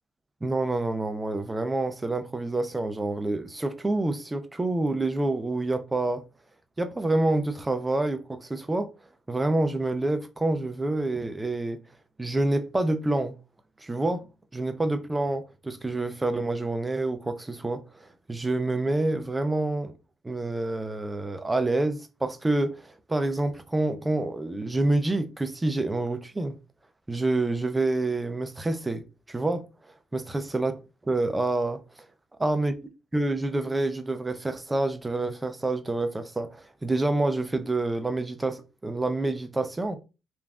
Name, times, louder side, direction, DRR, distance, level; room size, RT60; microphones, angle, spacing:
voice 1, 0.4-6.2 6.8-8.9 9.3-11.8 12.2-13.4 13.8-14.3 14.5-19.9 20.2-26.6 27.1-29.6 30.1-30.7 31.0-31.8 32.4-32.7 33.1-40.0, right 2 dB, 15° right, 0.4 m, -27 dB
3.3 x 2.4 x 2.3 m
cardioid pair, 90°, 0 cm